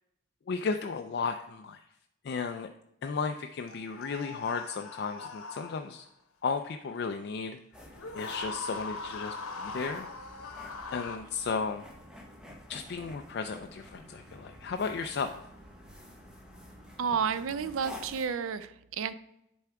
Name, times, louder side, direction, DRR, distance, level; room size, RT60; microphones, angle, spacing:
voice 1, 0.5-1.8 2.2-2.7 3.0-6.1 6.4-7.6 8.1-10.1 10.9-11.8 12.7-15.3, left 5 dB, 50° left, 5 dB, 0.3 m, -34 dB
sound 1, 3.7-6.1 7.9-11.2, left 3 dB, 85° left, 0.9 m, -41 dB
sound 2, 7.7-18.3, left 1 dB, 5° right, 0.8 m, -50 dB
voice 2, 17.0-19.1, right 6 dB, 65° right, 13 dB, 0.4 m, -31 dB
10.5 x 3.5 x 4.6 m, 0.81 s
head